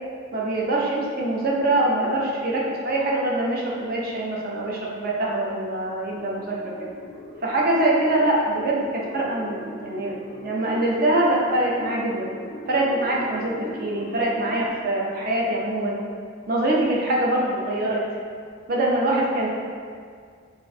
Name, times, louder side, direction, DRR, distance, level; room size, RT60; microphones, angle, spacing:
voice 1, 0.3-6.9 7.4-12.3 12.7-16.0 16.5-18.0 18.7-19.5, right 1 dB, 45° right, -3 dB, 0.5 m, -24 dB
sound 1, 6.1-14.7, left 1 dB, 35° left, 0.4 m, -40 dB
2.5 x 2.3 x 4.0 m, 2.1 s
head